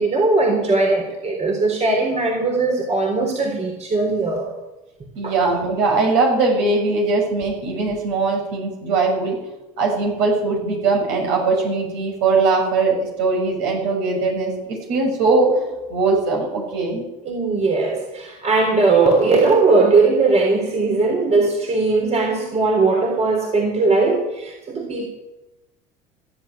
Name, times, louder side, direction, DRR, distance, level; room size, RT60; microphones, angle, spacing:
voice 1, 0.0-4.5 5.2-5.3 17.2-25.1, right 3 dB, 35° right, 2 dB, 3.4 m, -19 dB
voice 2, 5.1-9.4 9.8-14.5 14.9-15.6 15.9-17.0, right 3 dB, 65° right, 1 dB, 6.7 m, -20 dB
14.5 x 8.4 x 9.4 m, 1.0 s
hypercardioid pair, 80°, 20 cm